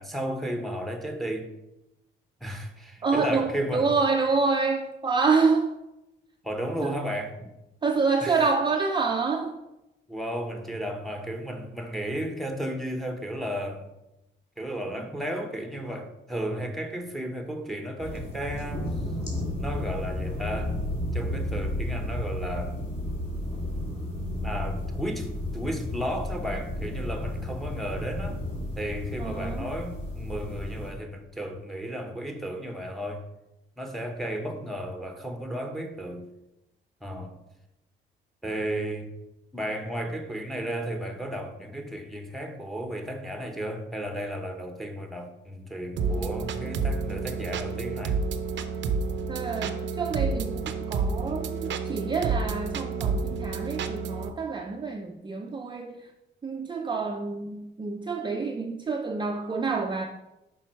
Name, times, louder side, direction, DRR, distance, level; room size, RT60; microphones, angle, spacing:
voice 1, 0.0-1.5 2.4-3.9 6.4-7.5 8.2-8.4 10.1-13.9 14.6-18.9 19.6-20.8 21.1-22.9 24.4-28.4 28.8-33.2 33.8-36.3 37.0-37.4 38.4-39.1 39.5-48.2, equal, ahead, 1.1 m, -33 dB
voice 2, 3.0-5.8 6.8-7.0 7.8-9.6 29.2-29.7 49.3-56.1 56.4-60.1, right 4 dB, 25° right, 0.5 m, -27 dB
sound 1, 18.0-30.9, left 1 dB, 35° left, 2.6 m, -32 dB
sound 2, 46.0-54.3, right 4 dB, 65° right, 0.6 m, -30 dB
5.8 x 5.3 x 4.5 m
cardioid pair, 90°, 20 cm